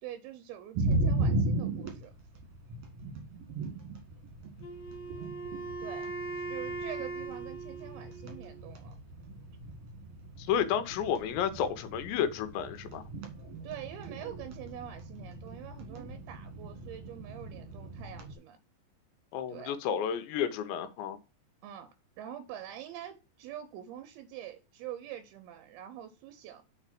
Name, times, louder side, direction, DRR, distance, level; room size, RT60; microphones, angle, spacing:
voice 1, 0.0-2.1 5.8-6.1 6.5-9.0 13.6-18.6 19.5-19.8 21.6-26.6, right 11 dB, 80° right, 2.4 m, -45 dB
sound 1, 0.7-18.3, right 2 dB, 55° right, 1.9 m, -37 dB
Wind instrument woodwind instrument, 4.6-8.7, right 3 dB, 45° left, 2.8 m, -40 dB
voice 2, 10.4-13.0 19.3-21.2, left 8 dB, 80° left, 3.1 m, -31 dB
7.8 x 4.2 x 5.9 m
omnidirectional pair, 5.2 m